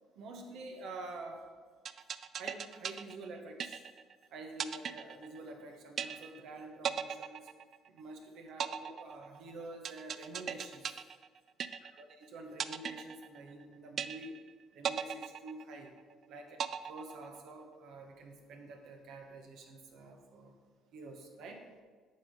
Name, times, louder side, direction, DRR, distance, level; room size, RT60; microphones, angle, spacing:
voice 1, 0.1-1.5 2.4-3.9 4.3-7.5 7.9-11.0 11.9-14.4 14.7-15.9 16.3-20.6 20.9-21.7, right 2 dB, 65° right, 3 dB, 1.2 m, -48 dB
sound 1, 1.9-4.2 4.6-5.6 6.0-6.5 6.8-8.1 8.6-12.2 12.6-13.6 14.0-14.5 14.8-16.1 16.6-17.6, right 8 dB, 50° right, 0.3 m, -38 dB
8.1 x 3.8 x 6.3 m, 1.5 s
hypercardioid pair, 65°, 0 cm